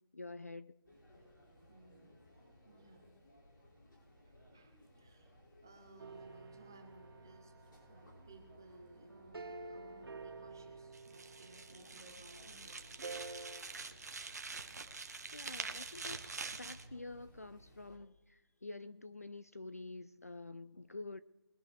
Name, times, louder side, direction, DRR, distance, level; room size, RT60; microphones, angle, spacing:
voice 1, 0.1-0.7 15.3-21.2, left 3 dB, 35° left, 0.3 m, -48 dB
sound 1, 0.8-18.0, equal, 55° left, 5.7 m, -61 dB
voice 2, 1.7-2.3 2.6-3.1 4.2-5.3 5.6-13.1, right 2 dB, 10° right, 0.6 m, -60 dB
sound 2, 6.0-12.2 13.0-13.6, right 3 dB, 70° right, 2.3 m, -50 dB
sound 3, 10.9-16.9, right 4 dB, 40° right, 0.9 m, -46 dB
22.0 x 11.0 x 3.4 m
figure-of-eight pair, 180°, 13 cm